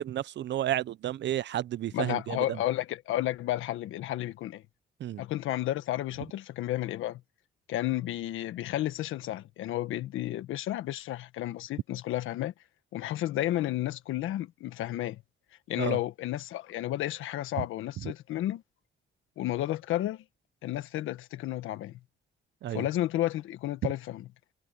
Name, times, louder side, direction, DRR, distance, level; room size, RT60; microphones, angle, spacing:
voice 1, 0.0-2.6 5.0-5.2 15.8-16.0 18.0-18.1 22.6-22.9, right 12 dB, 65° right, 0.8 m, -32 dB
voice 2, 1.9-4.6 5.2-7.2 7.7-12.5 12.9-15.2 15.7-18.6 19.4-20.2 20.6-22.0 22.7-24.2, left 14 dB, 85° left, 1.5 m, -32 dB
cardioid pair, 90°, 20 cm